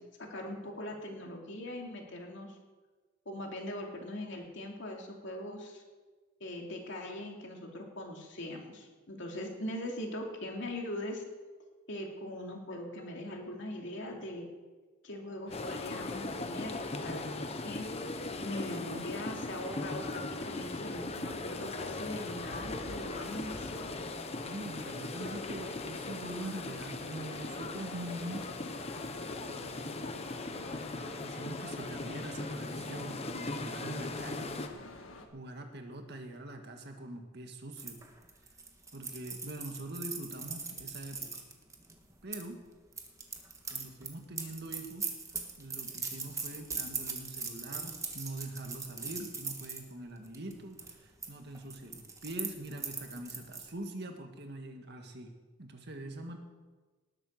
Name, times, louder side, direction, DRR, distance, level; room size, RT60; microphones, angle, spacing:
voice 1, 0.2-2.6 3.3-5.8 6.4-11.2 11.9-14.5 15.0-17.9 18.4-24.0, left 1 dB, 65° left, 1 dB, 2.7 m, -41 dB
sound 1, 15.5-35.3, left 2 dB, 80° left, 1.6 m, -50 dB
sound 2, 15.5-34.7, left 2 dB, 30° left, 1.0 m, -39 dB
voice 2, 24.4-28.5 29.4-30.2 30.5-30.8 31.1-34.7 35.3-38.0 38.9-41.4 42.2-42.6 43.7-45.1 45.6-55.3 55.6-56.4, right 1 dB, 55° right, 5 dB, 1.8 m, -44 dB
sound 3, 37.8-42.4 42.9-49.8 50.3-50.5 50.8-51.3 51.5-53.7, right 4 dB, 15° right, 1.5 m, -40 dB
19.0 x 8.0 x 6.5 m, 1.3 s
head